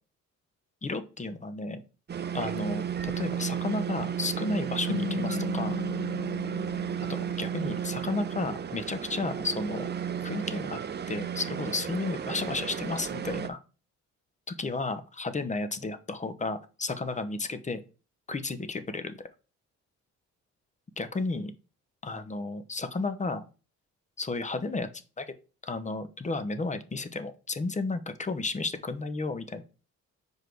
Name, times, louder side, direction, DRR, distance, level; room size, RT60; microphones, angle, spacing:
voice 1, 0.8-1.8 2.3-5.8 7.1-9.9 10.2-10.8 11.1-13.6 14.5-17.8 18.3-19.1 21.0-21.5 22.0-23.4 24.2-24.9 25.2-25.3 25.6-29.6, left 3 dB, 25° left, 10 dB, 0.8 m, -33 dB
sound 1, 2.1-13.5, right 8 dB, 35° right, 0.6 m, -33 dB
sound 2, 4.9-8.0, left 9 dB, 40° left, 0.5 m, -37 dB
5.0 x 4.8 x 4.6 m, 0.34 s
cardioid pair, 90°, 30 cm